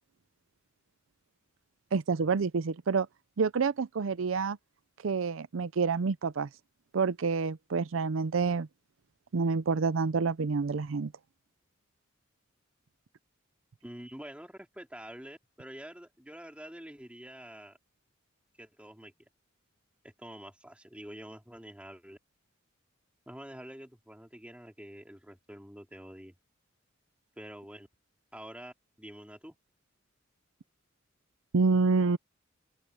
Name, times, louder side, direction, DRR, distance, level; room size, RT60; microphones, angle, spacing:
voice 1, 1.9-3.1 3.4-4.6 5.0-6.5 6.9-8.7 9.3-11.1 31.5-32.2, right 4 dB, 75° right, 0.5 m, -28 dB
voice 2, 13.8-17.8 18.6-19.3 20.0-22.2 23.3-26.4 27.4-27.9 28.3-29.5, equal, 5° right, 3.3 m, -47 dB
open air
head